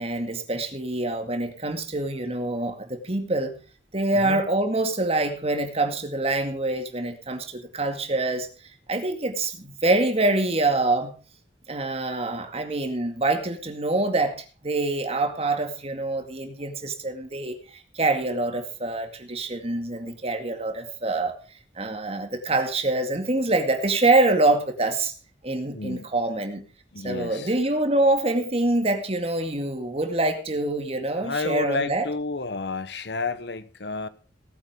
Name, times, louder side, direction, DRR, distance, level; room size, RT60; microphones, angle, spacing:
voice 1, 0.0-3.5 3.9-8.5 8.9-11.1 11.7-21.3 21.8-25.1 25.4-26.6 27.0-32.1, right 2 dB, 35° right, 2.2 m, -25 dB
voice 2, 4.1-4.4 25.7-26.1 26.9-27.5 31.1-34.1, left 3 dB, 65° left, 1.1 m, -31 dB
18.0 x 8.6 x 5.1 m
head